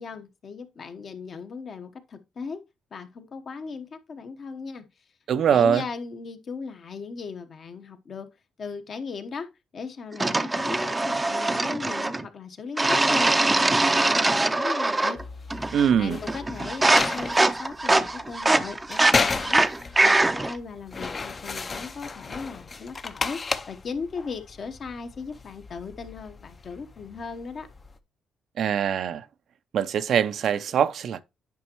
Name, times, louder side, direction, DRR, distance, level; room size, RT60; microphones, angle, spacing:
voice 1, 0.0-2.6 2.9-4.9 5.5-8.3 8.6-9.5 9.7-15.6 16.0-19.7 20.0-27.7, left 5 dB, 50° left, 1.0 m, -37 dB
voice 2, 5.3-5.8 15.7-16.2 28.6-29.3 29.7-31.2, right 8 dB, 65° right, 0.5 m, -22 dB
sound 1, 10.2-12.2 12.8-15.2 15.5-16.0 16.3-20.6, right 2 dB, 15° right, 0.5 m, -23 dB
sound 2, 15.2-28.0, left 4 dB, 35° left, 0.6 m, -34 dB
9.4 x 5.3 x 3.0 m
cardioid pair, 90°, 0 cm